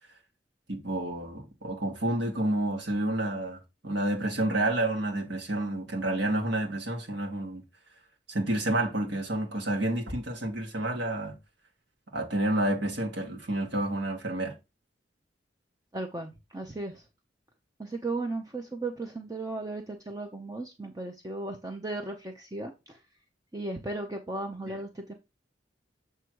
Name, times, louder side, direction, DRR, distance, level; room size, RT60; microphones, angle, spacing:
voice 1, 0.7-7.6 8.3-11.4 12.1-14.5 24.7-24.8, right 1 dB, 75° right, 1.8 m, -29 dB
voice 2, 15.9-17.0 17.8-23.0 23.5-25.1, right 2 dB, 20° right, 0.7 m, -36 dB
7.5 x 3.4 x 4.6 m
head